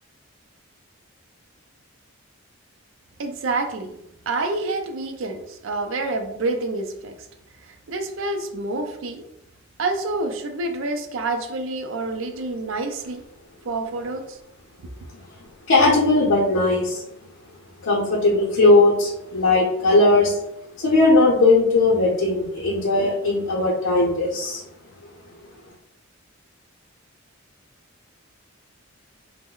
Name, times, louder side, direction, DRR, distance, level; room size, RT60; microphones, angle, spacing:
voice 1, 3.2-3.9 4.3-7.1 7.6-9.2 9.8-13.2 13.6-14.4, right 2 dB, 65° right, 6 dB, 0.4 m, -28 dB
voice 2, 15.7-17.0 17.8-20.4 20.8-24.6, left 2 dB, 85° left, -4 dB, 0.6 m, -18 dB
3.0 x 2.1 x 3.7 m, 0.82 s
head